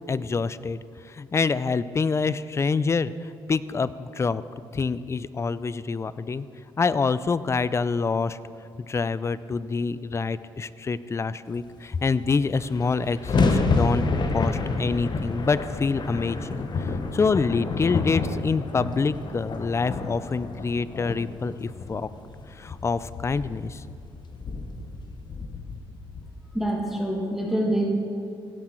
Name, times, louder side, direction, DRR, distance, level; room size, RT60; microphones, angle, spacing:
voice 1, 0.1-0.8 1.0-4.4 4.7-6.5 6.8-8.4 8.9-14.0 14.3-22.1 22.5-23.8, left 4 dB, 25° left, 16 dB, 0.4 m, -26 dB
sound 1, 12.4-26.7, left 3 dB, 45° left, 0.9 m, -29 dB
voice 2, 26.5-27.8, right 1 dB, 5° right, -1 dB, 1.6 m, -25 dB
16.0 x 6.2 x 4.4 m, 2.4 s
cardioid pair, 75°, 10 cm